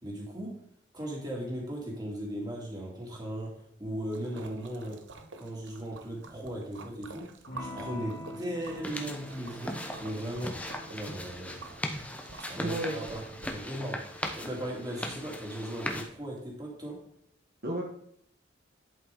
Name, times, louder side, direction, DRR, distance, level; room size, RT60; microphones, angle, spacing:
voice 1, 0.0-0.5 0.9-3.5 3.8-5.0 5.4-7.3 7.6-10.5 10.9-11.6 12.4-14.0 14.3-17.0, right 1 dB, 20° right, -2 dB, 2.6 m, -37 dB
Splash splatter, 4.1-13.6, right 3 dB, 75° right, 0.9 m, -49 dB
Electric guitar / Strum, 7.5-15.8, equal, 55° left, 2.4 m, -47 dB
sound 1, 8.8-16.0, left 1 dB, 5° left, 0.9 m, -39 dB
voice 2, 12.6-13.2 17.6-17.8, equal, 55° right, -1 dB, 1.3 m, -33 dB
11.0 x 5.8 x 3.8 m, 0.69 s
head